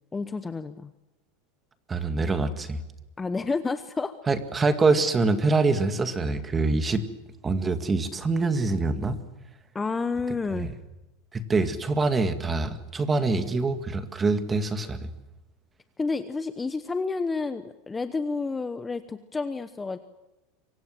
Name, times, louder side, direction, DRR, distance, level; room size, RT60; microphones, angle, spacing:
voice 1, 0.1-0.9 3.2-4.1 9.7-10.7 16.0-20.0, left 4 dB, 10° left, 10 dB, 1.0 m, -30 dB
voice 2, 1.9-2.8 4.3-7.0 7.4-9.2 10.5-10.7 11.3-15.1, right 3 dB, 15° right, 9 dB, 2.0 m, -25 dB
26.5 x 24.5 x 7.8 m, 1.0 s
supercardioid pair, 150°, 0 cm